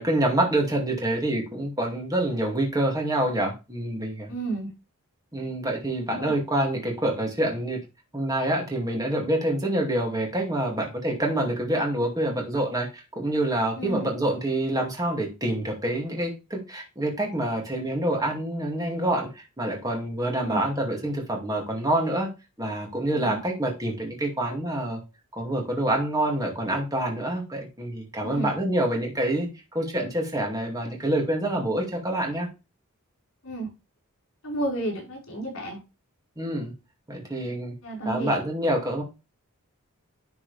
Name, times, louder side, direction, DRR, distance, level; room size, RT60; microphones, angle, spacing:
voice 1, 0.0-4.3 5.3-7.8 8.1-22.3 22.6-25.0 25.3-32.5 36.4-36.7 37.1-37.7 38.1-39.0, right 1 dB, 15° right, 0 dB, 2.4 m, -27 dB
voice 2, 4.3-4.7 6.1-6.3 13.8-14.1 20.4-20.6 23.1-23.4 28.2-28.5 33.4-33.7 34.4-35.8 37.8-38.3, right 2 dB, 70° left, -1 dB, 4.9 m, -31 dB
10.5 x 4.8 x 3.4 m, 0.27 s
head